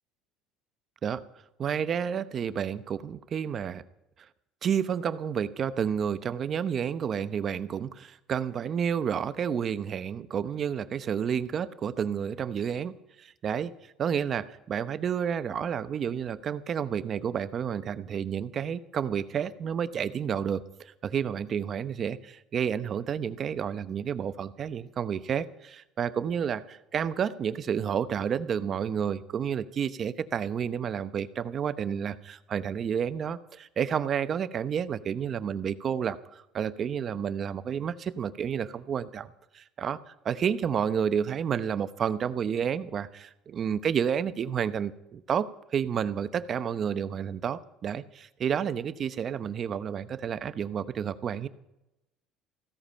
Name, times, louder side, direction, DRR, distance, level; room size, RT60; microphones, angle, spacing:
voice 1, 1.6-3.8 4.6-13.7 14.0-51.5, right 8 dB, 35° right, 13 dB, 0.8 m, -30 dB
16.0 x 14.0 x 5.6 m, 0.88 s
cardioid pair, 140°, 0 cm